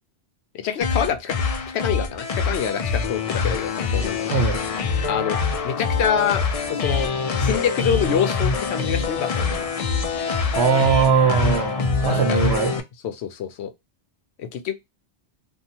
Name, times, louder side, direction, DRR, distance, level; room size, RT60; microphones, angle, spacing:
voice 1, 0.5-1.4 1.7-4.3 5.0-5.4 5.6-6.4 6.7-7.1 7.4-9.7 12.1-12.4 13.0-13.7 14.4-14.7, left 8 dB, 80° left, 0.9 m, -26 dB
sound 1, 0.8-12.8, left 5 dB, 55° left, 0.4 m, -24 dB
voice 2, 4.3-4.6 10.5-12.8, right 5 dB, 80° right, 0.9 m, -21 dB
2.7 x 2.3 x 2.7 m
omnidirectional pair, 1.1 m